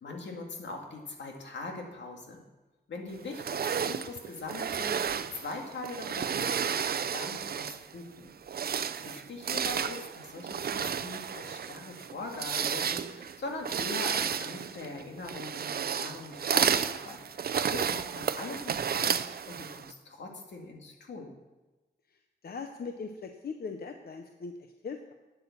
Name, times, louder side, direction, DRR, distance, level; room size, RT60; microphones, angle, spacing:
voice 1, 0.0-2.4 2.9-5.0 5.3-8.3 9.0-21.3, left 3 dB, 85° left, 1 dB, 2.0 m, -41 dB
sound 1, 3.3-7.9 8.4-19.9, right 7 dB, 60° right, 0.5 m, -32 dB
voice 2, 22.1-25.1, left 5 dB, 60° left, 5 dB, 0.8 m, -41 dB
9.2 x 8.3 x 7.1 m, 1.1 s
wide cardioid pair, 100°, 18 cm